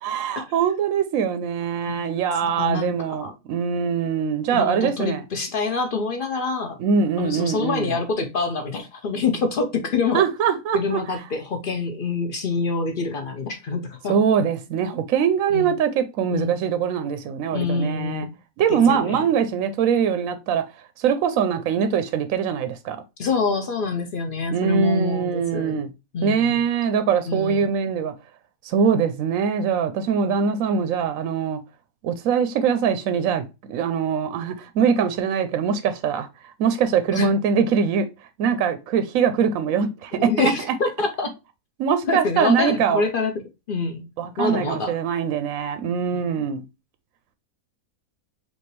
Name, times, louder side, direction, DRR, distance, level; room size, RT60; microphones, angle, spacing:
voice 1, 0.0-5.2 6.8-7.9 10.1-11.0 14.1-18.3 18.6-20.6 21.0-23.0 24.5-25.9 26.2-28.1 28.6-31.6 32.0-36.3 36.6-38.1 38.4-40.5 41.8-43.0 44.2-46.6, right 7 dB, 70° right, 0.9 m, -22 dB
voice 2, 2.4-3.3 4.5-6.8 7.2-10.3 10.7-14.2 15.5-15.7 16.3-16.5 17.5-18.3 18.7-19.3 23.2-25.8 26.1-26.6 27.3-27.7 37.1-37.3 40.2-41.3 42.0-43.3 43.7-44.0 44.4-45.0 46.0-46.2, left 4 dB, 55° left, 0.6 m, -26 dB
5.3 x 2.6 x 3.1 m
omnidirectional pair, 1.6 m